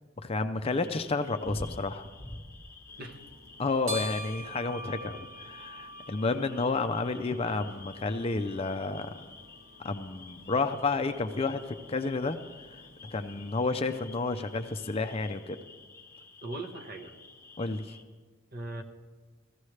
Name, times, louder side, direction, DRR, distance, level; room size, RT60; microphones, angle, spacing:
voice 1, 0.2-2.1 3.6-9.1 9.8-12.4 13.0-15.6 17.6-18.0, left 3 dB, 30° left, 8 dB, 0.4 m, -31 dB
sound 1, 0.6-18.0, left 2 dB, 10° left, 1.2 m, -50 dB
sound 2, 2.9-15.4, right 1 dB, 70° right, 2.5 m, -46 dB
voice 2, 16.4-17.2 18.5-18.8, right 2 dB, 45° right, 6 dB, 1.0 m, -39 dB
16.5 x 14.5 x 3.2 m, 1.4 s
head